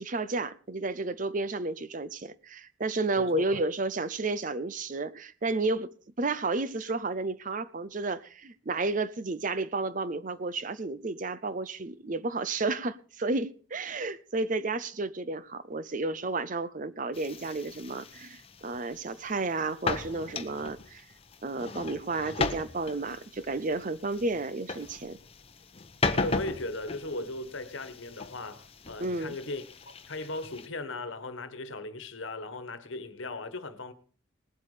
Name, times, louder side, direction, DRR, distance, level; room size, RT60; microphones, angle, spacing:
voice 1, 0.0-21.0 21.4-25.2 29.0-29.4, right 3 dB, 40° right, 0.6 m, -32 dB
voice 2, 3.2-3.6 26.2-33.9, left 2 dB, 65° left, 1.4 m, -37 dB
sound 1, 17.1-30.7, left 3 dB, 30° left, 0.9 m, -37 dB
19.5 x 8.2 x 5.0 m
head